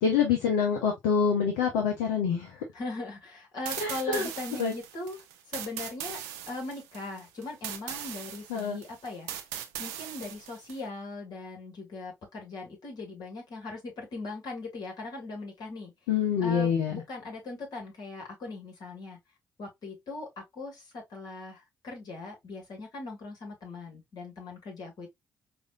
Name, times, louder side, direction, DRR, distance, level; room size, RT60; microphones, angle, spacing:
voice 1, 0.0-2.6 3.8-4.3 4.6-4.7 8.5-8.8 16.1-17.0, left 6 dB, 80° left, 0.7 m, -26 dB
voice 2, 2.7-6.2 6.5-9.3 9.8-15.9 16.4-19.2 19.6-25.1, left 3 dB, 60° left, 2.2 m, -40 dB
sound 1, 3.6-10.8, right 10 dB, 80° right, 0.5 m, -39 dB
4.8 x 2.6 x 2.4 m
hypercardioid pair, 40°, 8 cm